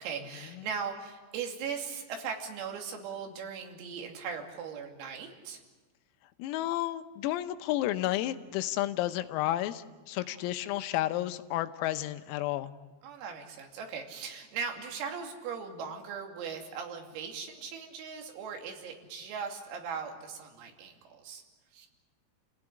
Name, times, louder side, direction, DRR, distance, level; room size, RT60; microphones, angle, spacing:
voice 1, 0.0-5.6 10.2-10.4 13.0-21.4 21.7-21.9, right 6 dB, 85° right, 2 dB, 5.4 m, -39 dB
voice 2, 6.4-12.7, left 14 dB, 90° left, 10 dB, 3.7 m, -31 dB
30.0 x 16.5 x 10.0 m, 1.3 s
omnidirectional pair, 5.9 m